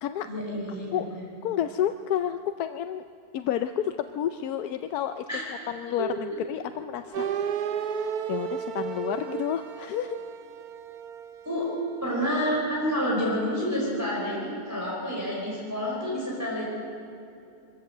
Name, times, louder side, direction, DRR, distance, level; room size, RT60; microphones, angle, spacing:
voice 1, 0.2-1.2 5.3-5.4 6.0-6.1 11.4-11.7 12.0-16.7, equal, 10° right, -5 dB, 4.5 m, -29 dB
voice 2, 1.4-3.0 3.3-7.2 7.7-10.2, left 10 dB, 90° left, 9 dB, 1.2 m, -30 dB
sound 1, 7.1-12.1, right 8 dB, 80° right, 1.3 m, -33 dB
23.5 x 14.0 x 7.9 m, 2.6 s
omnidirectional pair, 1.6 m